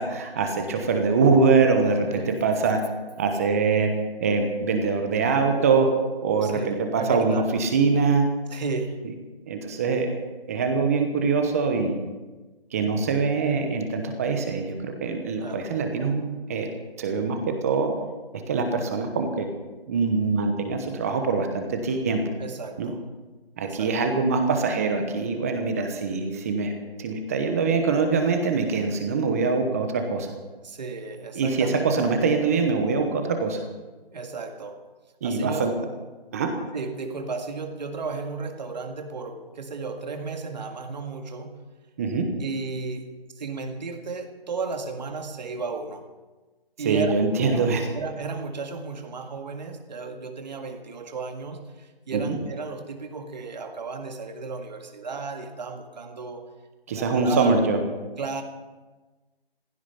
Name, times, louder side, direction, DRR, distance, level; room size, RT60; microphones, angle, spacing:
voice 1, 0.0-2.8 3.2-3.9 4.2-5.9 6.2-8.2 9.5-10.1 10.5-12.0 12.7-16.2 16.5-16.7 17.0-17.9 18.5-19.5 19.9-22.2 22.8-22.9 23.6-30.3 31.3-33.6 35.2-35.7 36.3-36.5 42.0-42.3 46.8-47.8 52.1-52.3 56.9-57.8, right 4 dB, 15° right, 5 dB, 1.0 m, -23 dB
voice 2, 6.4-7.5 8.5-9.0 15.4-15.7 22.4-23.0 23.6-24.0 30.6-32.1 34.1-34.9 35.2-35.7 36.7-41.6 42.4-46.1 46.8-47.1 47.5-47.6 47.9-56.5 56.9-57.6 58.2-58.4, right 4 dB, 45° right, 5 dB, 2.0 m, -33 dB
16.0 x 15.0 x 5.7 m, 1.2 s
hypercardioid pair, 165°, 30 cm